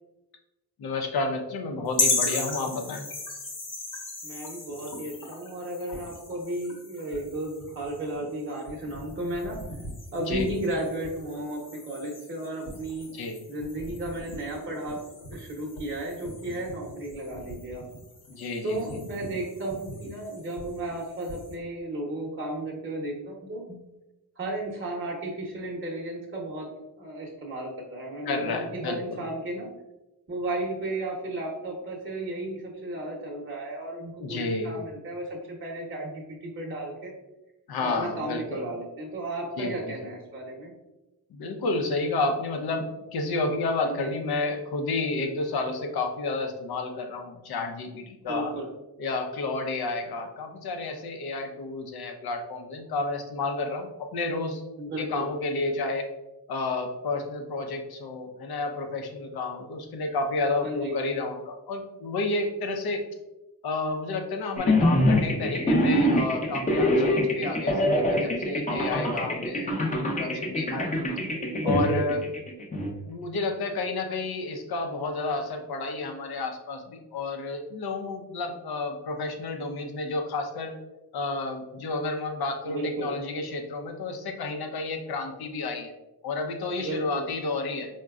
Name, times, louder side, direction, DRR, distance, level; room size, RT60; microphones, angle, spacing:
voice 1, 0.8-3.1 10.3-10.5 13.1-13.4 18.3-18.8 28.2-29.2 34.2-34.8 37.7-38.7 39.6-39.9 41.3-48.5 49.0-54.6 55.0-56.1 56.5-63.0 63.6-70.9 71.6-72.2 73.1-80.8 81.1-85.9 86.2-87.9, left 3 dB, 65° left, 4 dB, 0.6 m, -31 dB
sound 1, 1.9-21.5, left 2 dB, 50° left, 1.0 m, -36 dB
voice 2, 4.2-9.6 10.1-13.1 13.5-15.0 15.3-17.8 18.6-23.8 24.4-26.7 27.0-29.7 30.3-37.1 37.8-40.7 43.8-44.2 48.3-48.7 54.8-55.3 60.6-61.0 71.4-72.0 82.7-83.1 86.8-87.3, right 1 dB, 30° right, -2 dB, 0.8 m, -34 dB
sound 2, 64.6-72.9, left 1 dB, 20° left, 0.6 m, -24 dB
3.8 x 2.2 x 2.3 m, 1.0 s
cardioid pair, 55°, 40 cm